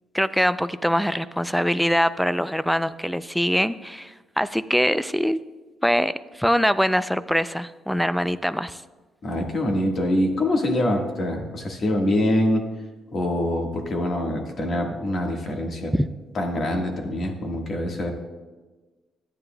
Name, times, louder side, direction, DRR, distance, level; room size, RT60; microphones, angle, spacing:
voice 1, 0.1-5.4 5.8-8.8 15.9-16.1, equal, ahead, 15 dB, 0.3 m, -23 dB
voice 2, 9.2-12.7 13.1-15.9 16.3-18.1, left 1 dB, 50° left, 2 dB, 1.5 m, -24 dB
12.5 x 9.2 x 2.2 m, 1.3 s
cardioid pair, 90°, 0 cm